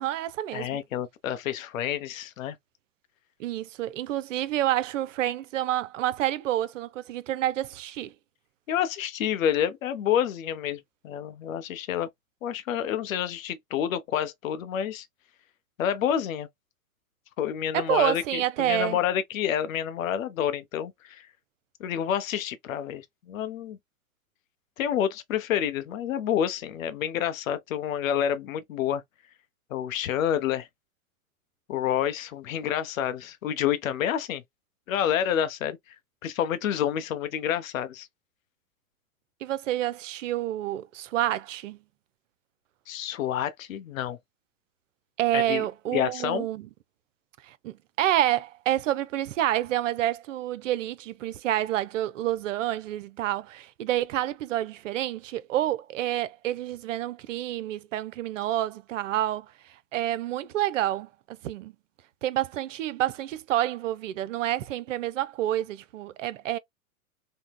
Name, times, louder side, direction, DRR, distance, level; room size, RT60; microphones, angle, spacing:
voice 1, 0.0-0.8 3.4-8.1 17.7-19.0 39.4-41.8 45.2-46.7 47.4-59.5 59.9-61.7 62.2-66.6, right 13 dB, 60° right, 0.5 m, -28 dB
voice 2, 0.5-2.6 8.7-12.1 12.4-15.1 15.8-16.5 17.4-21.3 21.8-23.8 24.8-29.0 29.7-30.7 31.7-34.4 34.9-35.8 36.2-38.1 42.9-44.2 45.3-45.6 45.9-46.5, left 10 dB, 65° left, 0.6 m, -28 dB
3.5 x 2.1 x 2.2 m
figure-of-eight pair, 100°, 43 cm